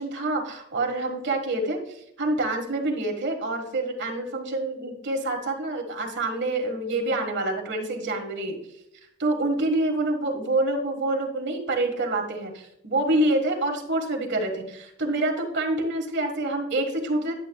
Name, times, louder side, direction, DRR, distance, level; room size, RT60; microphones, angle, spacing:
voice 1, 0.0-8.6 9.2-17.3, right 2 dB, 55° right, 3 dB, 1.6 m, -27 dB
10.5 x 8.7 x 2.3 m, 0.80 s
head